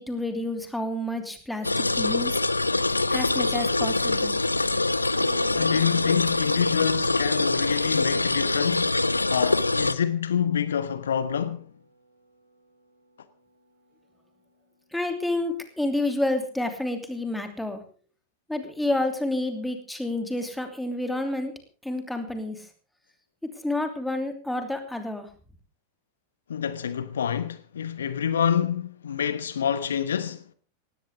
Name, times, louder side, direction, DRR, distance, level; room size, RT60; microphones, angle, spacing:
voice 1, 0.0-2.4 3.1-4.4 14.9-17.8 18.5-21.5 21.8-22.7 23.5-25.3, left 1 dB, 5° left, 2.9 m, -29 dB
sound 1, 1.6-9.9, left 2 dB, 80° left, 0.6 m, -24 dB
Piano, 5.1-15.5, right 1 dB, 85° right, 2.8 m, -49 dB
voice 2, 5.5-9.0 9.3-11.7 26.5-30.4, left 8 dB, 65° left, 1.1 m, -27 dB
18.5 x 16.5 x 3.6 m
figure-of-eight pair, 90°, 0 cm